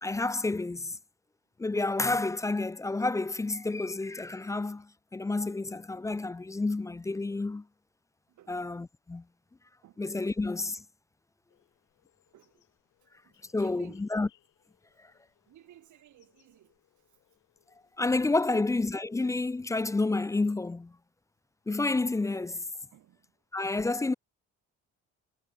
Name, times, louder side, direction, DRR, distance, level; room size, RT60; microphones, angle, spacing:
voice 1, 0.0-1.0 1.6-7.6 8.5-9.2 10.0-10.8 13.5-14.3 18.0-20.9 21.7-22.6 23.5-24.1, left 3 dB, 10° left, 0.3 m, -30 dB
sound 1, 11.5-18.2, left 14 dB, 85° left, 7.1 m, -70 dB
voice 2, 13.2-14.1 15.5-17.2 18.4-18.6 22.9-23.3, right 12 dB, 75° right, 2.5 m, -56 dB
cardioid pair, 90°, 30 cm